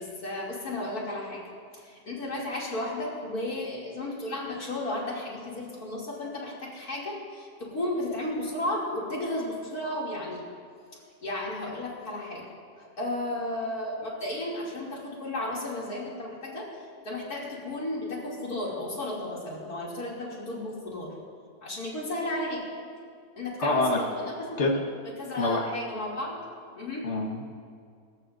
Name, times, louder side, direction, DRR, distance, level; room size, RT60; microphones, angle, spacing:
voice 1, 0.0-1.4 1.7-10.4 11.2-12.5 12.8-16.7 17.0-21.1 21.6-22.6 23.4-24.6 25.2-26.4 26.8-27.1, left 1 dB, 60° left, -5 dB, 3.3 m, -33 dB
voice 2, 23.6-24.0 24.6-24.8 25.4-25.7 27.0-27.4, left 2 dB, 45° left, 1 dB, 1.7 m, -25 dB
24.0 x 14.5 x 2.6 m, 2.2 s
omnidirectional pair, 1.8 m